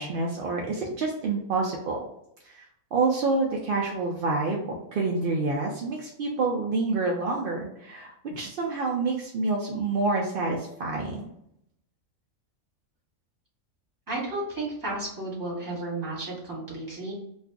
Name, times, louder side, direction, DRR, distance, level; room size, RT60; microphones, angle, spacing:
voice 1, 0.0-2.0 2.4-2.7 2.9-11.2, right 3 dB, 70° right, -1 dB, 0.5 m, -28 dB
voice 2, 14.1-17.1, right 2 dB, 15° right, -6 dB, 1.3 m, -33 dB
2.5 x 2.3 x 3.6 m, 0.76 s
omnidirectional pair, 1.4 m